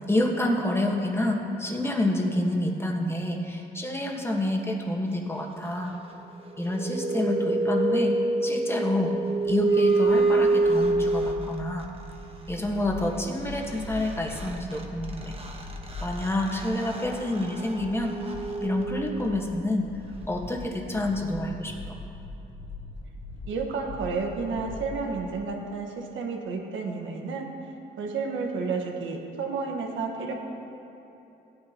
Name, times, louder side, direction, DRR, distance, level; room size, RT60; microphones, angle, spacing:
voice 1, 0.1-5.9 6.6-8.2 8.4-9.1 9.5-11.9 12.5-15.4 16.0-18.1 18.6-19.9 20.3-22.0, left 1 dB, 10° left, 0 dB, 1.4 m, -28 dB
sound 1, 6.5-11.8 13.7-13.8 14.0-19.5, right 2 dB, 30° right, 1.3 m, -27 dB
sound 2, 9.5-25.5, left 2 dB, 65° left, 2.2 m, -42 dB
voice 2, 23.5-27.5 28.0-30.3, right 4 dB, 75° right, 2 dB, 1.4 m, -31 dB
16.5 x 9.6 x 3.0 m, 2.9 s
cardioid pair, 90°, 20 cm